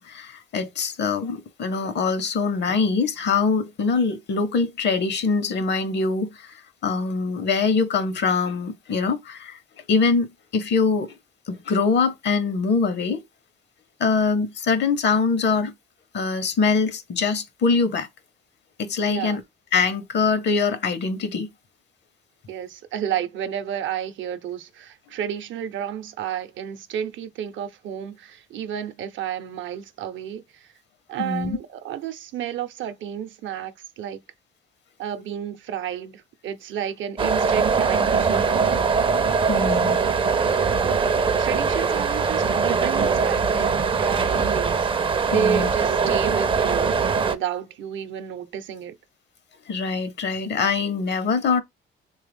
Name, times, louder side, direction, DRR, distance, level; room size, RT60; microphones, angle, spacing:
voice 1, 0.0-9.6 9.9-10.3 10.5-11.2 11.5-13.2 14.0-15.7 16.1-18.1 18.8-19.4 19.7-21.5 31.2-31.6 39.5-40.1 45.3-45.7 49.7-51.6, left 4 dB, 60° left, 0.8 m, -23 dB
voice 2, 22.5-30.7 31.1-34.2 35.0-39.0 40.7-49.0, right 9 dB, 75° right, 0.6 m, -31 dB
sound 1, 37.2-47.3, right 5 dB, 25° right, 0.4 m, -22 dB
3.3 x 2.3 x 3.3 m
cardioid pair, 90°, 20 cm